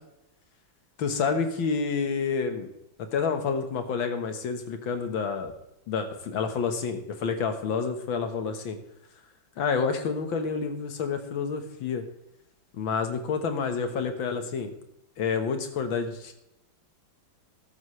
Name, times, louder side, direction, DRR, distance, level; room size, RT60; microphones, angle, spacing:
voice 1, 1.0-2.7 3.1-5.5 5.9-8.8 9.6-12.1 12.7-14.7 15.2-16.3, left 5 dB, 80° left, 7 dB, 2.1 m, -29 dB
13.0 x 12.5 x 3.2 m, 0.86 s
omnidirectional pair, 2.1 m